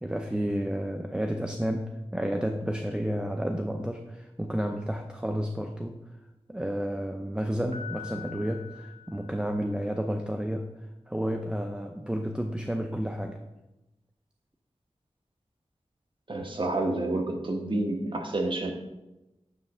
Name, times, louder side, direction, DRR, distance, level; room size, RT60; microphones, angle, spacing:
voice 1, 0.0-6.0 6.5-10.7 11.1-13.4, equal, 10° right, 4 dB, 0.5 m, -31 dB
Piano, 7.7-9.8, left 8 dB, 85° right, 1.2 m, -44 dB
voice 2, 16.3-18.7, right 2 dB, 45° right, 2 dB, 1.2 m, -29 dB
9.3 x 3.2 x 6.1 m, 0.99 s
wide cardioid pair, 85°, 11 cm